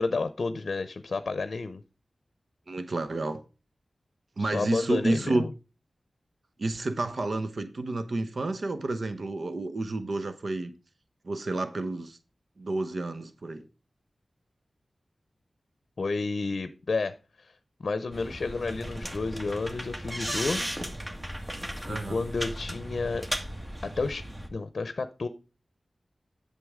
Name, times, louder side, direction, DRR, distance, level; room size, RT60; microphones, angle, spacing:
voice 1, 0.0-1.8 4.4-5.5 16.0-17.5 17.8-20.7 21.9-23.3 23.8-25.3, left 3 dB, 70° left, 0.6 m, -31 dB
voice 2, 2.7-3.4 4.4-5.5 6.6-10.7 11.2-12.2 12.6-13.7 21.9-22.2, right 2 dB, 65° right, 0.9 m, -30 dB
sound 1, 18.1-24.5, equal, 25° right, 1.8 m, -36 dB
8.0 x 6.8 x 3.6 m
cardioid pair, 45°, 0 cm